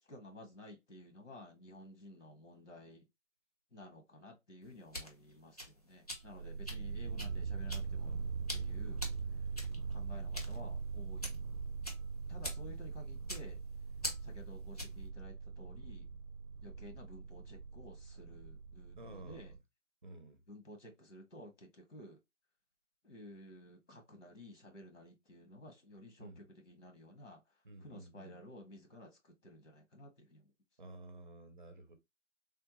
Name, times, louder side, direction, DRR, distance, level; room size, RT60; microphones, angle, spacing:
voice 1, 0.1-3.0 3.7-8.2 8.5-9.1 9.9-11.5 12.3-13.6 14.2-16.1 16.6-19.5 20.5-22.2 23.0-27.4 27.8-30.5, left 1 dB, 80° left, 1.6 m, -54 dB
sound 1, 4.6-15.1, equal, 30° left, 0.5 m, -46 dB
sound 2, 6.2-19.6, right 5 dB, 85° right, 0.5 m, -42 dB
voice 2, 19.0-19.6 20.0-20.4 26.2-26.4 27.6-28.4 30.8-32.0, right 2 dB, 40° right, 0.7 m, -52 dB
3.4 x 2.2 x 2.8 m
figure-of-eight pair, 165°, 37 cm